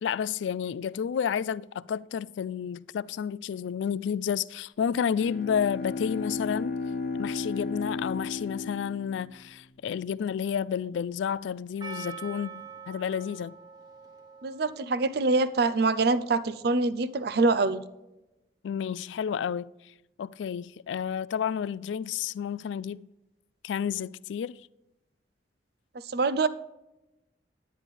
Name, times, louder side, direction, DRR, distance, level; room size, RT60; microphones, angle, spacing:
voice 1, 0.0-6.7 7.2-13.6 18.6-23.1 23.6-24.6, left 7 dB, 85° left, 0.3 m, -31 dB
Bowed string instrument, 5.0-9.7, left 4 dB, 55° left, 0.9 m, -34 dB
Percussion, 11.8-16.8, right 5 dB, 25° right, 1.1 m, -45 dB
voice 2, 14.4-17.8 26.1-26.5, right 3 dB, 60° right, 0.5 m, -25 dB
10.0 x 9.9 x 3.5 m
head